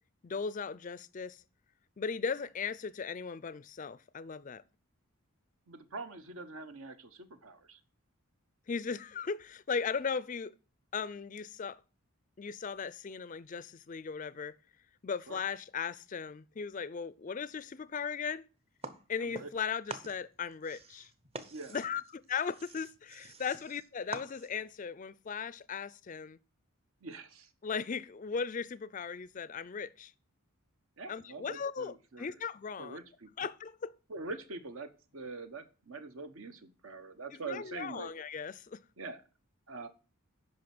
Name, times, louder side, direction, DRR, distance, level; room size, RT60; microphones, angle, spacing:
voice 1, 0.2-1.4 2.0-4.6 8.7-10.5 10.9-11.8 12.4-14.5 15.0-18.4 19.1-21.1 21.7-26.4 27.6-30.1 31.1-33.0 33.4-33.9 37.3-38.8, left 6 dB, 35° left, 0.4 m, -37 dB
voice 2, 5.7-7.8 15.3-15.4 19.2-19.5 21.5-21.8 27.0-27.5 31.0-32.3 32.8-33.3 34.1-38.1 39.0-39.2 39.7-39.9, right 3 dB, 70° right, 1.0 m, -44 dB
sound 1, 18.8-19.6 19.9-24.7, right 3 dB, 25° right, 0.7 m, -46 dB
8.6 x 5.5 x 5.9 m
head